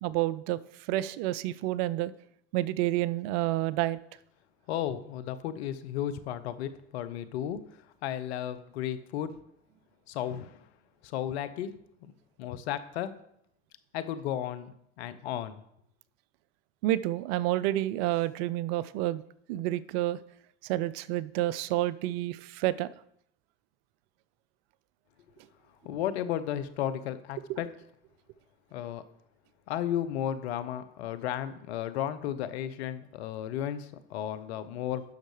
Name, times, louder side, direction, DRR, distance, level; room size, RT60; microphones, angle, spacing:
voice 1, 0.0-0.6 0.9-2.1 2.5-4.0 16.8-19.2 19.5-20.2 20.6-22.9 27.5-27.6, right 15 dB, 65° right, 18 dB, 0.5 m, -29 dB
voice 2, 4.7-7.6 8.0-9.3 10.1-10.5 11.0-11.7 12.4-13.1 13.9-14.7 15.0-15.6 25.8-27.7 28.7-29.0 29.7-35.0, left 10 dB, 80° left, 12 dB, 0.8 m, -34 dB
10.5 x 6.4 x 3.2 m, 0.73 s
hypercardioid pair, 75°, 32 cm